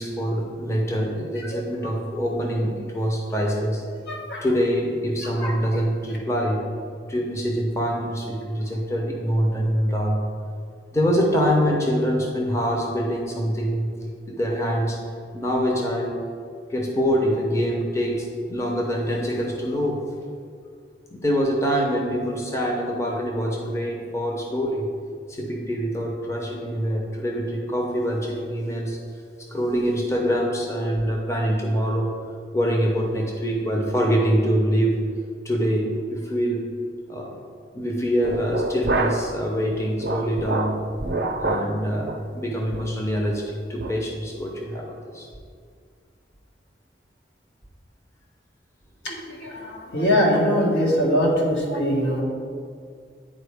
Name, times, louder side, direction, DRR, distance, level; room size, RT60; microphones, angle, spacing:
voice 1, 0.0-3.8 4.4-6.6 7.1-10.2 10.9-13.9 14.3-15.0 15.3-16.3 16.7-20.0 21.1-24.9 25.3-29.0 29.5-32.1 32.5-35.0 35.4-36.7 37.1-37.3 37.7-40.8 41.4-45.3, equal, 15° left, -1 dB, 0.6 m, -24 dB
voice 2, 4.1-4.4 5.4-5.5 49.0-52.2, equal, 75° left, -4 dB, 1.8 m, -22 dB
sound 1, 38.2-39.4 39.7-41.7 42.1-42.3 42.7-43.0 43.4-43.5 43.8-44.0, right 2 dB, 60° right, 0.5 m, -27 dB
10.0 x 4.3 x 3.4 m, 2.2 s
head